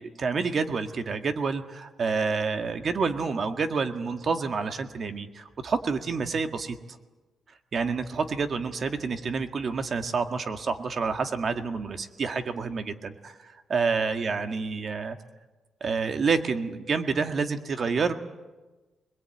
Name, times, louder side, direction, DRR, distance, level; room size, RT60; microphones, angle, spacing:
voice 1, 0.0-6.8 7.7-15.2 15.8-18.1, right 5 dB, 40° right, 7 dB, 1.7 m, -28 dB
25.0 x 21.5 x 9.1 m, 1.2 s
cardioid pair, 135°, 0 cm